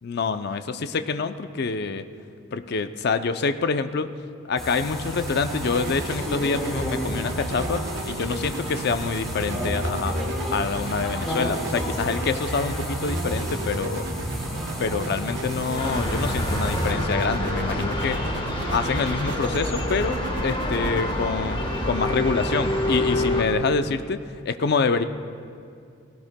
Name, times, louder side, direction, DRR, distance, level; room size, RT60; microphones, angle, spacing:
voice 1, 0.0-2.0 2.5-4.1 4.5-10.2 10.5-14.1 14.8-18.2 18.7-25.0, left 4 dB, 55° left, 10 dB, 0.5 m, -26 dB
sound 1, 4.6-16.9, equal, ahead, 3.2 m, -31 dB
sound 2, 4.8-22.6, right 3 dB, 60° right, 0.6 m, -36 dB
sound 3, 15.8-23.4, left 1 dB, 25° left, 1.2 m, -27 dB
17.5 x 17.0 x 2.2 m, 2.3 s
head